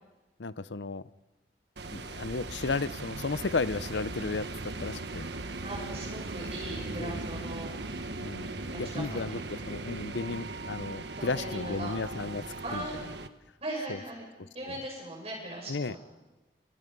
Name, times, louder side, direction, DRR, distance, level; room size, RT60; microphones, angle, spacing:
voice 1, 0.4-1.0 1.9-5.3 7.0-7.5 8.2-12.9 13.9-14.0 14.7-14.8 15.7-16.0, left 3 dB, 85° left, 16 dB, 0.7 m, -34 dB
sound 1, 1.8-13.3, right 2 dB, 75° right, 1.4 m, -38 dB
voice 2, 5.6-7.7 8.7-9.4 11.2-11.9 12.6-13.0 13.6-14.3 14.5-16.0, right 1 dB, 35° right, -3 dB, 7.4 m, -39 dB
29.0 x 28.0 x 5.4 m, 1.1 s
head